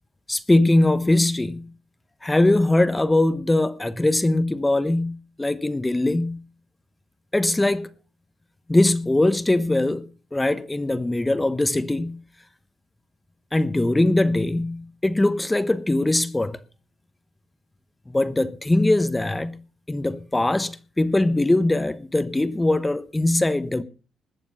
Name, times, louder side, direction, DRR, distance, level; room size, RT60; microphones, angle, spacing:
voice 1, 0.3-1.6 2.2-6.4 7.3-7.9 8.7-12.2 13.5-16.6 18.1-19.6 19.9-23.8, left 2 dB, 15° left, 0.9 m, -21 dB
20.0 x 7.1 x 5.4 m
cardioid pair, 90°, 0 cm